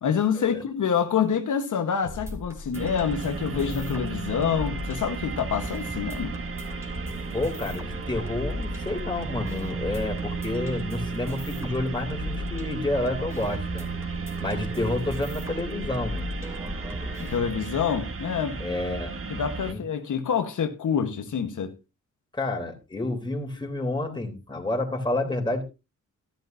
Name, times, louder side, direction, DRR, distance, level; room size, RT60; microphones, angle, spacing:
voice 1, 0.0-6.4 17.2-18.6 19.3-21.7, left 7 dB, 80° left, 1.3 m, -27 dB
sound 1, 2.0-17.4, left 1 dB, 10° right, 3.0 m, -38 dB
sound 2, 2.7-19.7, right 4 dB, 45° right, 1.5 m, -34 dB
voice 2, 7.3-13.9 14.4-16.3 18.6-19.2 19.7-19.8 22.3-25.6, left 2 dB, 15° left, 3.4 m, -29 dB
14.0 x 12.0 x 2.7 m
wide cardioid pair, 110°, 31 cm